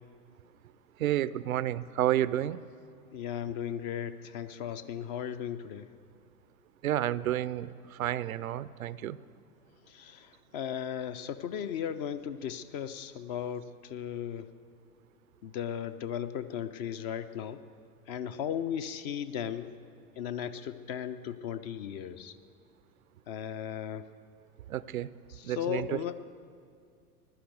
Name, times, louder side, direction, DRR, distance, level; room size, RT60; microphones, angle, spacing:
voice 1, 1.0-2.6 6.8-9.2 24.7-25.1 25.4-26.0, right 12 dB, 65° right, 18 dB, 0.6 m, -30 dB
voice 2, 3.1-5.9 9.9-14.5 15.4-17.6 18.1-19.7 20.2-22.3 23.3-24.1 25.3-26.1, left 9 dB, 30° left, 12 dB, 0.5 m, -36 dB
16.0 x 11.5 x 7.9 m, 2.2 s
figure-of-eight pair, 95°, 45 cm